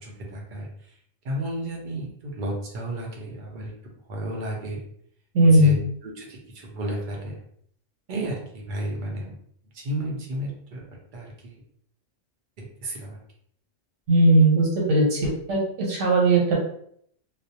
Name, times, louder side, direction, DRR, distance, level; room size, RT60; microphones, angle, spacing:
voice 1, 0.0-0.7 1.2-3.7 4.1-4.8 5.4-7.4 8.1-9.4 9.7-10.8 11.1-11.6 12.8-13.2, right 1 dB, 50° right, -1 dB, 0.6 m, -32 dB
voice 2, 5.3-5.8 14.1-16.5, right 1 dB, 75° right, -3 dB, 1.2 m, -18 dB
2.4 x 2.0 x 2.7 m, 0.67 s
omnidirectional pair, 1.3 m